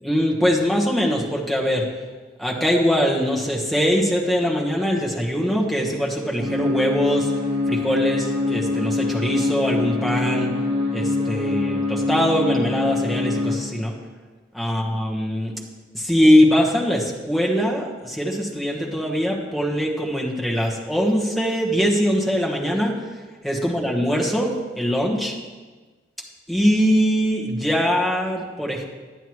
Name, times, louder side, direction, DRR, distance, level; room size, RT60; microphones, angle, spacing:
voice 1, 0.0-1.8 2.4-7.3 7.7-10.5 10.9-13.9 14.5-15.5 15.9-22.9 23.4-25.3 26.5-28.8, equal, ahead, -3 dB, 1.2 m, -22 dB
sound 1, 6.4-13.6, left 3 dB, 30° right, 1.6 m, -24 dB
11.0 x 8.9 x 3.1 m, 1.3 s
head